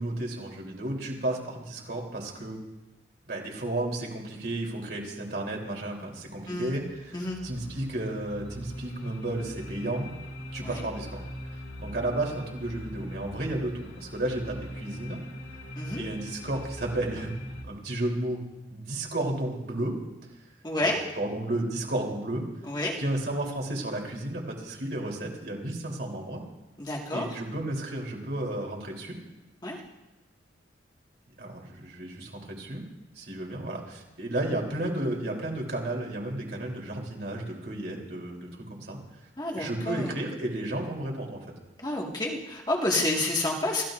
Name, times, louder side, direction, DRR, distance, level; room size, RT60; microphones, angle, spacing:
voice 1, 0.0-2.6 3.3-10.1 10.5-11.2 11.8-15.2 16.0-17.3 17.6-18.4 18.7-19.9 20.8-20.9 21.2-22.4 23.0-26.4 27.1-29.2 31.4-32.8 33.2-39.0 39.5-41.5, right 1 dB, 55° right, -1 dB, 3.5 m, -33 dB
sound 1, 6.3-17.6, equal, 70° left, 2.3 m, -41 dB
voice 2, 15.8-16.1 20.6-21.1 22.6-23.0 26.8-27.3 29.6-29.8 39.4-40.2 41.8-43.8, left 1 dB, 20° left, -2 dB, 1.9 m, -29 dB
28.0 x 15.5 x 2.6 m, 1.0 s
head